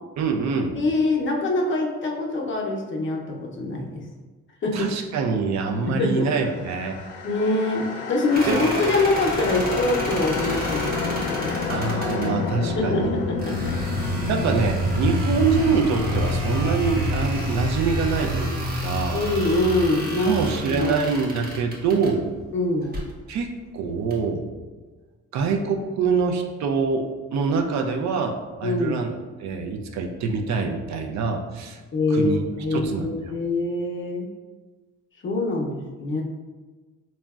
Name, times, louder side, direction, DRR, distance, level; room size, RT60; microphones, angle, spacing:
voice 1, 0.2-0.8 4.7-7.0 8.5-8.6 11.7-13.1 14.3-19.3 20.2-22.3 23.3-24.5 25.3-31.8 32.1-33.1, right 5 dB, 65° right, 3 dB, 0.4 m, -25 dB
voice 2, 0.7-4.0 4.6-4.9 5.9-6.3 7.2-11.6 12.6-14.0 19.1-20.9 22.5-22.9 28.6-29.0 31.9-34.3 35.2-36.2, left 2 dB, 40° left, 0 dB, 0.5 m, -24 dB
sound 1, 6.3-21.6, left 2 dB, 85° left, 0.5 m, -28 dB
sound 2, 8.3-12.3 13.4-22.1 22.8-23.1 24.1-24.2, right 1 dB, 30° right, 0.7 m, -33 dB
3.8 x 2.1 x 2.3 m, 1.3 s
cardioid pair, 90°, 30 cm